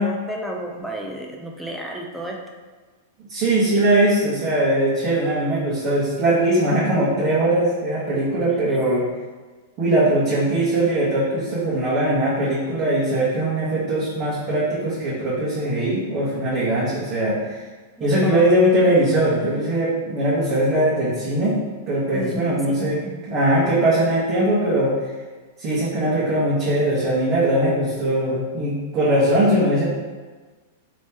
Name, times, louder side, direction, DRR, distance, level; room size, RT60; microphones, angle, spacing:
voice 1, 0.0-2.4 18.0-18.7 22.1-23.1, right 1 dB, ahead, -1 dB, 0.6 m, -32 dB
voice 2, 3.3-9.1 9.8-17.6 18.0-21.6 21.9-23.0 23.3-24.9 25.6-29.9, right 1 dB, 35° right, -9 dB, 1.1 m, -20 dB
2.9 x 2.8 x 3.6 m, 1.4 s
hypercardioid pair, 125°, 0 cm